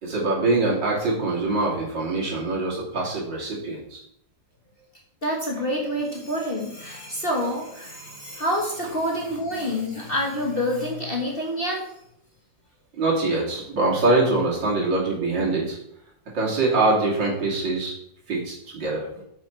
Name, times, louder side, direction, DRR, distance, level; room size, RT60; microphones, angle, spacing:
voice 1, 0.0-4.0 12.9-15.8 16.3-17.9 18.3-19.1, right 2 dB, 65° right, -3 dB, 3.1 m, -23 dB
voice 2, 5.2-11.9, equal, 30° left, -1 dB, 1.4 m, -27 dB
8.7 x 6.0 x 4.5 m, 0.74 s
omnidirectional pair, 2.1 m